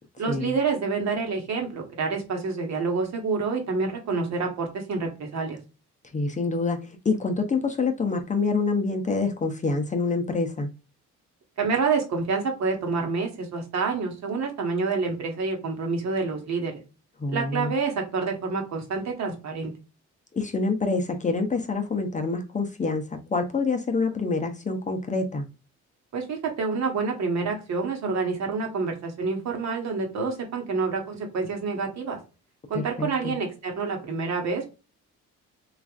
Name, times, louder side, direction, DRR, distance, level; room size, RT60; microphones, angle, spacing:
voice 1, 0.2-5.6 11.6-16.7 17.3-19.7 26.1-32.2 32.7-34.7, right 4 dB, 65° right, 2 dB, 1.2 m, -28 dB
voice 2, 6.1-10.7 17.2-17.7 20.3-25.5 32.7-33.3, left 3 dB, 25° left, 4 dB, 0.6 m, -26 dB
3.2 x 2.4 x 2.4 m, 0.30 s
cardioid pair, 90°, 30 cm